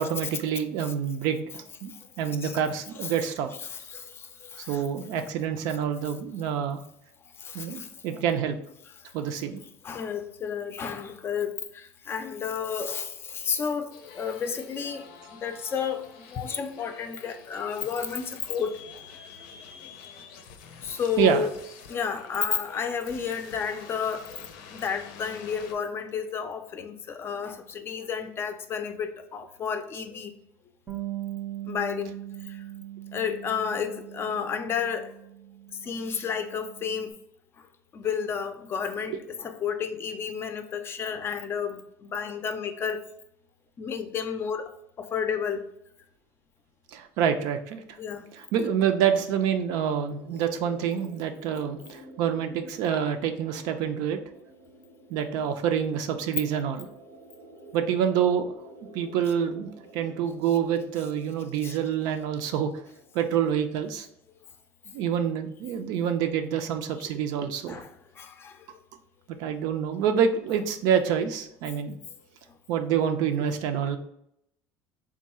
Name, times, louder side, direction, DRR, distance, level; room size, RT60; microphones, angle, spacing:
voice 1, 0.0-3.5 4.7-6.8 7.5-8.6 9.1-9.6 21.2-21.4 39.1-39.2 46.9-48.0 48.3-54.2 55.1-56.9 57.7-58.4 58.9-62.7 63.1-64.1 64.9-67.8 69.4-72.0 72.7-74.0, right 8 dB, 70° right, 0.5 m, -27 dB
voice 2, 3.6-4.8 7.4-7.9 9.8-18.8 20.8-21.5 21.9-30.3 31.7-32.1 32.5-32.6 33.1-35.1 35.8-37.1 37.9-43.0 43.8-44.7 45.0-45.6 48.0-48.3 61.6-61.8 67.7-67.9 68.2-68.7, left 7 dB, 35° left, 0.4 m, -31 dB
sound 1, 13.9-25.7, left 6 dB, 80° left, 0.6 m, -47 dB
Bass guitar, 30.9-37.1, right 14 dB, 20° right, 0.6 m, -40 dB
sound 2, 48.1-63.7, right 1 dB, 90° right, 0.9 m, -51 dB
3.6 x 2.3 x 4.2 m
supercardioid pair, 120°, 7 cm